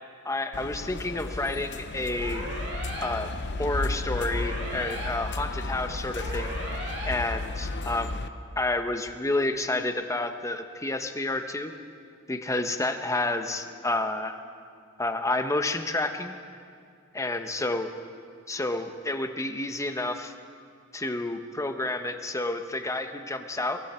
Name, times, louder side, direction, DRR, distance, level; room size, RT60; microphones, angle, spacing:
voice 1, 0.2-2.4 3.0-3.3 3.6-6.5 7.0-8.2 8.6-11.7 12.3-14.4 15.0-16.3 17.1-17.9 18.5-20.3 20.9-23.8, left 2 dB, 15° left, 7 dB, 1.0 m, -30 dB
sound 1, 0.5-8.3, left 2 dB, 55° left, 0.8 m, -33 dB
sound 2, 2.2-3.1 4.2-5.1 6.2-7.1, right 1 dB, 55° right, 6.9 m, -37 dB
24.5 x 24.0 x 4.4 m, 2.3 s
head